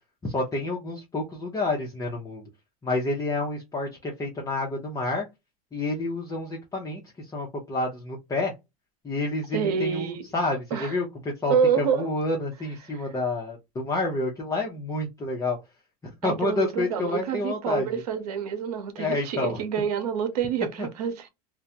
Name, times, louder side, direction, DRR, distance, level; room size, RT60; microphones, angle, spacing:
voice 1, 0.2-2.4 2.8-5.3 5.7-8.5 9.0-15.6 16.0-17.9 19.0-19.6 20.8-20.9, left 2 dB, 15° left, 0.6 m, -29 dB
voice 2, 9.5-10.2 10.7-10.9 11.5-12.1 16.2-21.3, right 7 dB, 85° right, 0.7 m, -27 dB
2.2 x 2.1 x 2.7 m
supercardioid pair, 110°, 19 cm